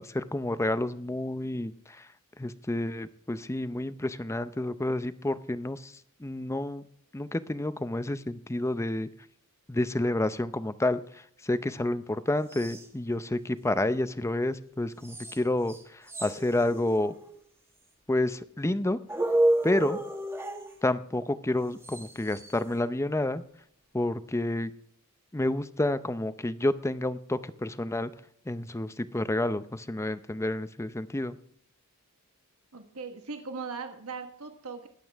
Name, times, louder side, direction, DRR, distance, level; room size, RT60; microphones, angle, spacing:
voice 1, 0.0-1.7 2.4-5.8 6.2-6.8 7.1-9.1 9.7-11.0 11.5-15.8 16.2-17.1 18.1-19.0 19.6-20.0 20.8-23.4 23.9-24.7 25.3-28.1 28.5-31.4, left 1 dB, 15° left, 13 dB, 0.6 m, -29 dB
sound 1, 12.5-12.9 15.0-15.4 15.7-15.8 16.1-17.4 19.1-20.7 21.8-22.5, right 1 dB, 10° right, 1.3 m, -30 dB
voice 2, 32.7-34.9, right 4 dB, 70° right, 6 dB, 1.4 m, -39 dB
21.0 x 8.4 x 3.5 m, 0.65 s
head